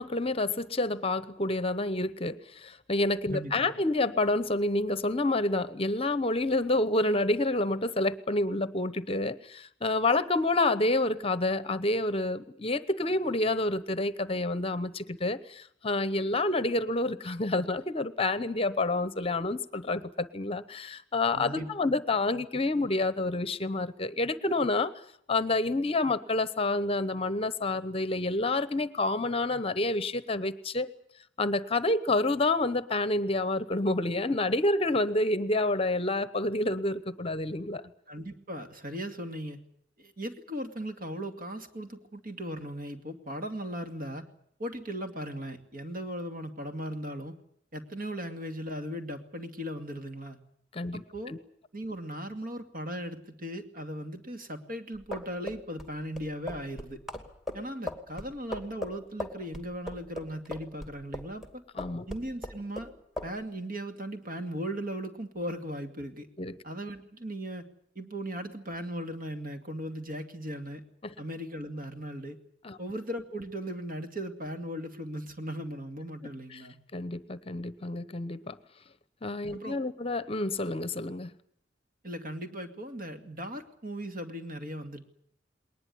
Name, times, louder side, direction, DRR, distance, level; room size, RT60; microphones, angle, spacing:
voice 1, 0.0-24.9 25.3-30.9 31.4-37.9 50.7-51.0 51.3-51.4 61.8-62.1 66.4-66.5 71.0-71.1 72.6-72.8 76.5-76.6 76.9-78.6 79.2-81.3, left 2 dB, 30° left, 14 dB, 0.9 m, -28 dB
voice 2, 3.3-3.7 21.4-21.7 38.1-39.6 40.0-44.3 44.6-47.4 47.7-50.4 50.9-51.3 51.7-57.0 57.5-61.6 62.1-62.9 63.2-66.3 66.6-67.6 68.0-70.8 71.2-72.4 72.8-76.8 79.5-79.8 82.0-85.1, equal, 50° right, 6 dB, 2.4 m, -38 dB
sound 1, 54.9-61.5 61.8-62.9 63.2-63.3, left 2 dB, ahead, 2.5 m, -38 dB
20.5 x 19.5 x 9.5 m, 0.68 s
head